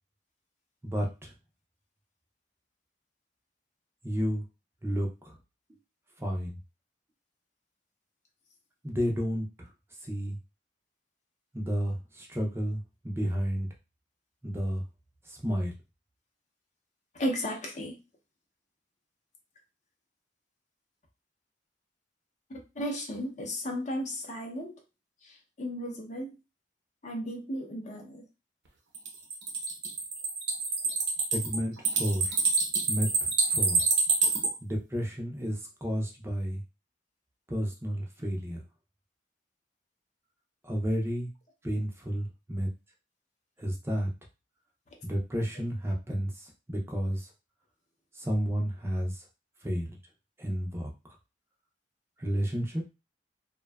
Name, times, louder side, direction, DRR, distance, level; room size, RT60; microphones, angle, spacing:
voice 1, 0.8-1.3 4.0-4.4 4.8-5.4 6.2-6.6 8.8-9.7 10.0-10.4 11.5-13.7 14.4-14.8 15.3-15.7 31.3-32.4 32.9-33.8 34.6-36.6 37.5-38.6 40.6-41.3 41.6-42.7 43.6-44.1 45.0-47.3 48.1-49.2 49.6-50.0 50.4-50.9 52.2-52.9, equal, 15° right, 0 dB, 0.5 m, -31 dB
voice 2, 17.1-18.0 22.5-24.8 25.2-26.3 27.0-28.2, equal, 45° left, 2 dB, 0.6 m, -35 dB
sound 1, 28.9-34.5, right 4 dB, 75° right, 0.7 m, -27 dB
2.6 x 2.2 x 2.2 m, 0.28 s
head